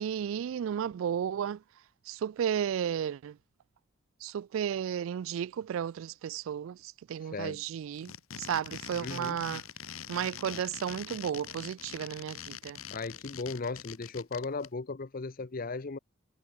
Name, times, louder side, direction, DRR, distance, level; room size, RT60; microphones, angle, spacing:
voice 1, 0.0-1.6 2.1-3.4 4.2-8.1 8.4-9.6 10.1-12.8, right 8 dB, 70° right, 0.3 m, -33 dB
voice 2, 7.2-7.6 9.0-9.4 12.9-16.0, left 3 dB, 45° left, 0.7 m, -37 dB
sound 1, 7.9-14.7, left 8 dB, 80° left, 1.7 m, -43 dB
head